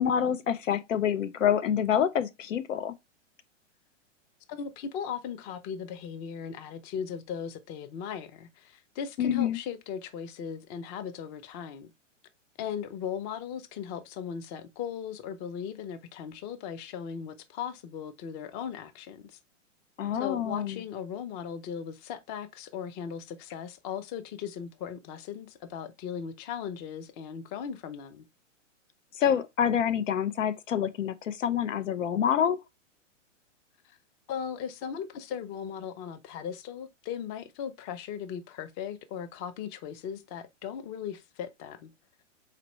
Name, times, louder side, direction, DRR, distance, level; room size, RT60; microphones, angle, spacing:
voice 1, 0.0-2.9 9.2-9.6 20.0-20.8 29.2-32.6, left 9 dB, 85° left, 0.8 m, -27 dB
voice 2, 4.5-11.9 12.6-19.4 20.1-28.2 34.3-41.9, left 7 dB, 30° left, 0.6 m, -38 dB
4.2 x 4.2 x 3.1 m
hypercardioid pair, 135°, 38 cm